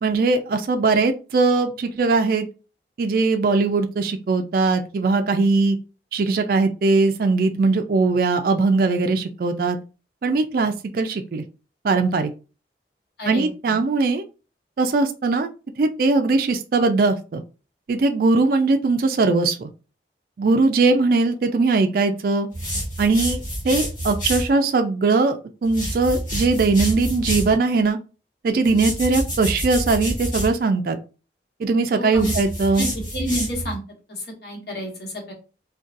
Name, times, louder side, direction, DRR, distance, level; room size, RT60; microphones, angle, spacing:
voice 1, 0.0-2.5 3.0-5.8 6.1-9.8 10.2-11.4 11.8-12.3 13.3-14.2 14.8-15.5 15.8-17.4 17.9-19.7 20.4-22.5 23.0-28.0 28.4-31.0 31.6-32.8, right 3 dB, 55° right, 6 dB, 0.3 m, -20 dB
voice 2, 13.2-13.8 31.9-32.3 32.8-33.8 34.1-35.3, equal, 65° left, -1 dB, 1.2 m, -30 dB
sound 1, 22.5-24.5 25.6-27.5 28.6-30.5 32.1-33.7, equal, 50° left, 1.7 m, -28 dB
3.8 x 2.2 x 2.5 m, 0.33 s
head